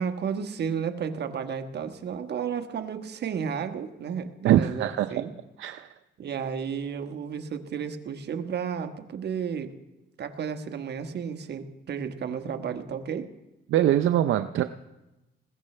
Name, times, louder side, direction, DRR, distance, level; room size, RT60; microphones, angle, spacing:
voice 1, 0.0-5.3 6.2-9.7 10.2-13.3, right 7 dB, 60° right, 7 dB, 1.3 m, -32 dB
voice 2, 4.4-5.1 5.6-5.9 13.7-14.6, right 12 dB, 75° right, 9 dB, 0.6 m, -22 dB
20.5 x 16.0 x 3.3 m, 1.0 s
cardioid pair, 90°, 20 cm